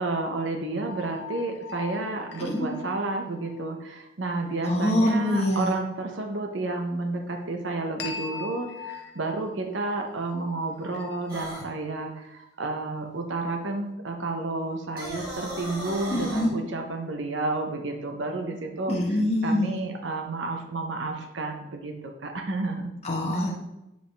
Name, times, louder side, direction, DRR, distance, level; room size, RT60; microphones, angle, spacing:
voice 1, 0.0-18.9 19.4-22.9, right 2 dB, 75° right, 3 dB, 0.8 m, -31 dB
sound 1, 0.9-3.7 8.0-11.6, left 6 dB, 60° left, 0.8 m, -41 dB
voice 2, 4.6-5.8 16.1-16.5 18.9-19.8 23.0-23.6, left 1 dB, 35° left, -2 dB, 1.0 m, -25 dB
sound 2, 11.3-11.7 14.8-16.5, right 1 dB, 50° right, 2.0 m, -36 dB
7.8 x 4.9 x 3.3 m, 0.92 s
head